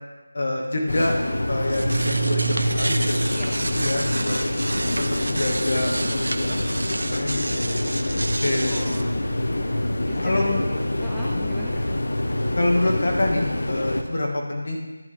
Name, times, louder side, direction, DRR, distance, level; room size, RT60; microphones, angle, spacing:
voice 1, 0.3-1.2 1.5-4.4 5.0-6.7 7.0-7.9 8.4-8.7 10.2-10.6 12.6-14.8, left 2 dB, 45° left, 0 dB, 1.7 m, -26 dB
sound 1, 0.9-14.0, left 1 dB, 70° left, 0.9 m, -26 dB
sound 2, 1.5-9.0, right 2 dB, 70° right, 0.7 m, -28 dB
voice 2, 8.6-12.1, equal, ahead, -8 dB, 0.3 m, -41 dB
10.5 x 8.3 x 3.4 m, 1.2 s
figure-of-eight pair, 180°, 0 cm